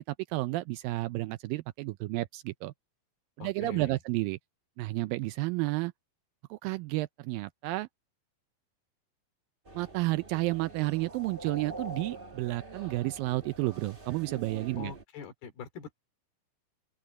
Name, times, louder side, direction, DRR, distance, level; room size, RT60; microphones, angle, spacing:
voice 1, 0.0-2.7 3.4-4.4 4.8-5.9 6.5-7.9 9.8-14.9, right 20 dB, 80° right, 2.1 m, -31 dB
voice 2, 3.4-3.9 14.8-15.9, left 6 dB, 85° left, 4.9 m, -43 dB
sound 1, 9.6-15.0, right 2 dB, 40° right, 0.8 m, -45 dB
open air
omnidirectional pair, 4.3 m